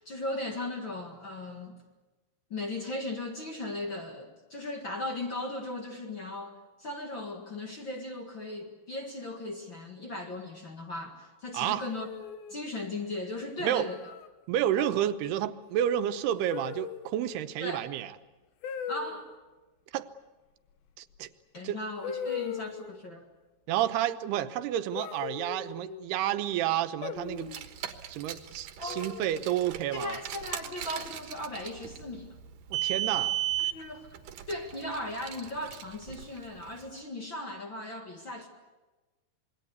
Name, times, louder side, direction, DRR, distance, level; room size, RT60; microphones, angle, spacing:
voice 1, 0.0-1.8 2.5-12.1 12.5-14.0 17.6-17.9 18.9-19.3 21.5-23.3 28.8-29.1 29.9-32.3 33.6-34.1 34.5-38.5, left 2 dB, 40° left, 1.9 m, -37 dB
sound 1, 11.8-12.6 13.9-14.3 14.7-15.1 16.5-17.2 18.6-19.2 21.2-21.3 22.0-23.0 25.0-26.0 27.0-27.7 28.9-29.5, left 8 dB, 75° left, 3.1 m, -39 dB
voice 2, 14.5-18.1 19.9-20.1 21.0-21.3 21.6-21.8 23.7-27.5 28.1-30.2 32.7-33.3, right 11 dB, 85° right, 3.0 m, -30 dB
Car, 27.3-36.8, right 12 dB, 65° right, 2.7 m, -36 dB
26.5 x 21.5 x 8.1 m
omnidirectional pair, 4.5 m